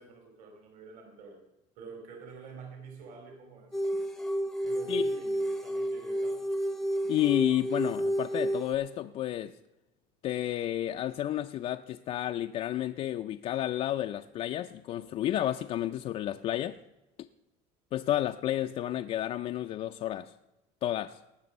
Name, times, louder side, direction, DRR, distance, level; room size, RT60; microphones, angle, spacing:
voice 1, 0.0-1.4 1.8-3.8 4.6-6.4, right 4 dB, 55° right, 3 dB, 2.9 m, -48 dB
sound 1, 3.7-8.8, equal, 5° left, 0.7 m, -31 dB
voice 2, 7.1-9.5 10.2-16.8 17.9-20.3 20.8-21.2, left 12 dB, 40° left, 6 dB, 0.4 m, -31 dB
18.5 x 6.8 x 5.3 m, 0.99 s
cardioid pair, 150°, 15 cm